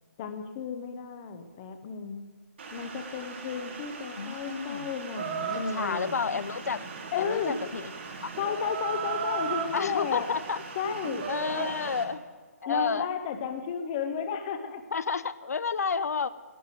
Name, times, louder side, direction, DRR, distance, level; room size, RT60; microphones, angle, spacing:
voice 1, 0.2-2.3 2.7-6.1 7.1-7.6 8.4-10.3 10.8-11.3 12.7-14.8, left 6 dB, 20° left, 8 dB, 0.8 m, -33 dB
sound 1, 2.6-12.0, right 4 dB, 45° right, 1.9 m, -43 dB
voice 2, 4.2-4.9 5.5-6.9 7.2-7.9 8.2-8.3 9.7-10.6 11.3-12.2 12.6-13.1 14.9-16.3, left 5 dB, 75° left, 15 dB, 0.6 m, -30 dB
Chicken rooster, 5.2-12.2, right 6 dB, 30° right, 1.2 m, -37 dB
11.5 x 9.4 x 9.1 m, 1.5 s
hypercardioid pair, 170°, 9 cm